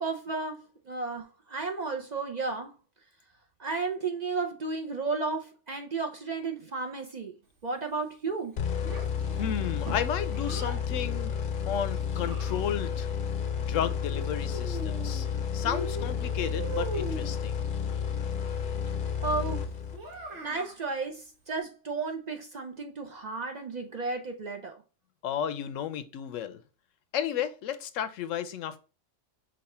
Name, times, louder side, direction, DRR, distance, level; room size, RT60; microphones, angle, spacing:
voice 1, 0.0-2.7 3.6-7.3 7.6-8.5 19.2-19.6 20.4-24.8, right 4 dB, 45° right, 0.6 m, -33 dB
sound 1, 8.6-20.2, left 7 dB, 55° left, 0.6 m, -31 dB
Child speech kid speaking, 8.8-10.8 11.7-13.0 14.1-15.3 15.6-17.4 19.9-20.8, right 2 dB, 75° right, 1.6 m, -40 dB
voice 2, 9.4-11.4 11.7-13.1 13.7-15.3 15.5-17.6 25.2-26.6 27.1-28.8, left 9 dB, 85° left, 1.0 m, -33 dB
5.3 x 2.4 x 4.2 m
omnidirectional pair, 1.3 m